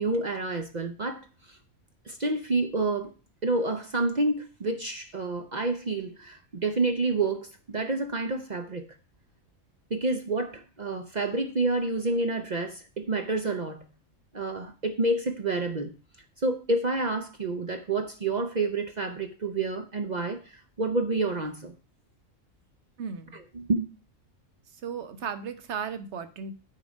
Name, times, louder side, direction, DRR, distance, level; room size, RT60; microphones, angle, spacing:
voice 1, 0.0-1.6 2.1-3.1 3.4-8.9 9.9-13.9 14.3-15.9 16.4-21.7 23.3-23.9, right 2 dB, 40° right, 0.7 m, -29 dB
voice 2, 23.0-23.4 24.8-26.5, right 6 dB, 60° right, 1.2 m, -35 dB
8.9 x 4.8 x 5.2 m
omnidirectional pair, 1.4 m